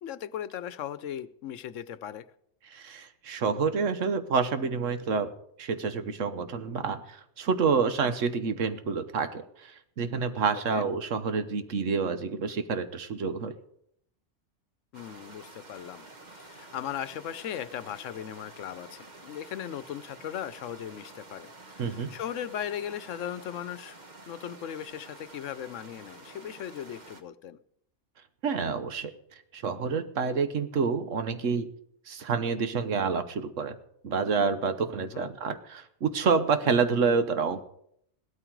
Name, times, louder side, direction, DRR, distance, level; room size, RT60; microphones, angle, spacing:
voice 1, 0.0-2.3 10.5-10.9 14.9-16.1 16.3-24.0 24.3-27.6 35.0-35.3, left 10 dB, 85° left, 16 dB, 1.1 m, -38 dB
voice 2, 2.7-5.3 5.6-13.6 21.8-22.1 28.4-29.1 29.5-31.7 32.1-33.8 34.0-37.6, right 5 dB, 80° right, 10 dB, 1.4 m, -28 dB
sound 1, 14.9-27.2, right 2 dB, 40° right, 1.2 m, -49 dB
16.5 x 13.0 x 4.6 m, 0.71 s
omnidirectional pair, 1.3 m